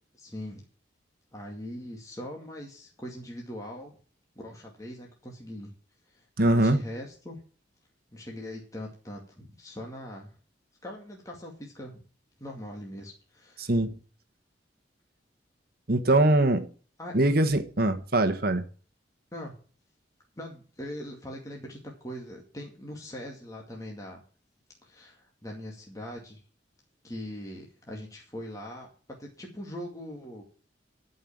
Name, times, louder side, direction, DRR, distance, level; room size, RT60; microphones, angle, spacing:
voice 1, 0.1-0.6 1.3-3.9 4.4-5.7 6.1-7.4 8.1-10.3 10.8-12.0 12.4-13.7 17.0-17.1 19.3-19.6 20.4-24.2 24.8-26.4 27.0-28.9 29.2-30.4, left 1 dB, 20° left, 2.3 m, -41 dB
voice 2, 6.4-6.8 13.7-13.9 15.9-16.7 17.1-18.6, right 1 dB, 55° right, 1.4 m, -22 dB
13.0 x 5.6 x 7.4 m
head